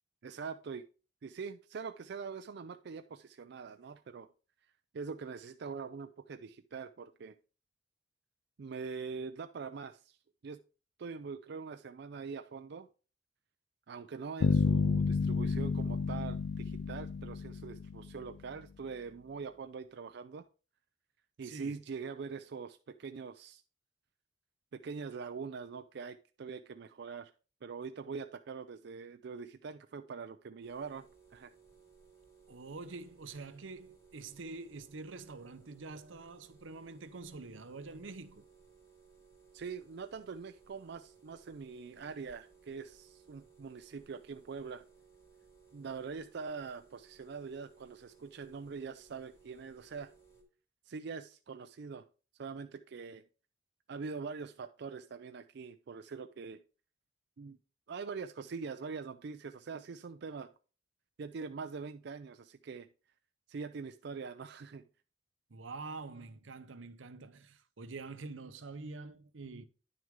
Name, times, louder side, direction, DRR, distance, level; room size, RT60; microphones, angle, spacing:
voice 1, 0.2-0.8 1.2-4.3 4.9-7.4 8.6-10.2 10.4-10.6 11.0-12.9 13.9-20.4 21.4-23.6 24.7-27.3 27.6-31.5 39.5-44.8 45.7-50.1 50.9-52.1 52.4-53.2 53.9-56.6 57.4-57.6 57.9-60.5 61.2-62.9 63.5-64.8, right 5 dB, 60° right, 0.4 m, -43 dB
sound 1, 14.4-18.4, left 4 dB, 60° left, 0.3 m, -31 dB
voice 2, 21.4-21.8 32.5-38.4 65.5-69.6, right 3 dB, 80° right, 0.8 m, -46 dB
sound 2, 30.6-50.4, right 5 dB, 15° left, 2.2 m, -62 dB
10.0 x 6.2 x 3.6 m
head